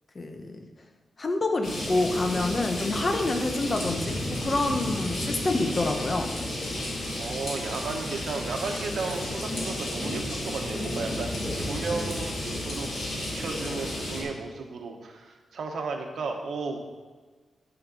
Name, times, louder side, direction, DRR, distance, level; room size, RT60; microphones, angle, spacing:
voice 1, 0.1-0.6 1.2-6.3, left 2 dB, 35° left, 5 dB, 1.0 m, -27 dB
sound 1, 1.6-14.2, left 1 dB, 65° left, 3.4 m, -32 dB
voice 2, 7.2-11.3 11.6-12.9 13.2-16.8, right 4 dB, 80° right, 3 dB, 1.2 m, -34 dB
11.5 x 5.1 x 5.4 m, 1.4 s
wide cardioid pair, 120°, 0 cm